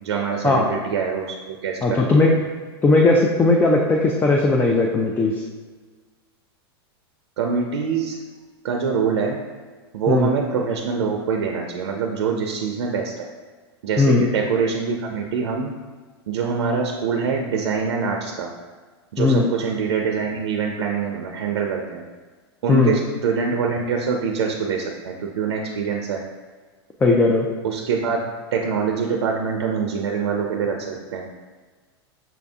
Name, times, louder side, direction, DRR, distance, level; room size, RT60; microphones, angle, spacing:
voice 1, 0.0-2.3 7.4-8.2 8.6-9.4 9.9-13.3 13.8-15.7 16.3-18.5 19.1-22.0 22.6-26.2 27.6-28.2 28.5-31.2, right 5 dB, 80° right, 2 dB, 0.5 m, -24 dB
voice 2, 1.8-2.3 2.8-5.3 10.1-10.3 14.0-14.3 19.2-19.5 22.7-23.0 27.0-27.5, left 3 dB, 15° left, 0 dB, 0.4 m, -17 dB
5.8 x 2.6 x 3.5 m, 1.4 s
hypercardioid pair, 125°, 14 cm